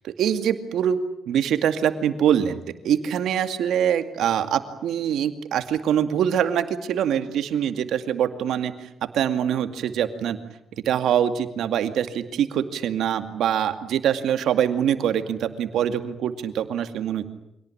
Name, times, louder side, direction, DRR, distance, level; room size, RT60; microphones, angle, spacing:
voice 1, 0.0-1.0 1.3-8.9 9.1-10.4 10.8-17.3, right 9 dB, 75° right, 9 dB, 2.3 m, -24 dB
26.0 x 18.0 x 9.9 m, 0.83 s
cardioid pair, 90°, 0 cm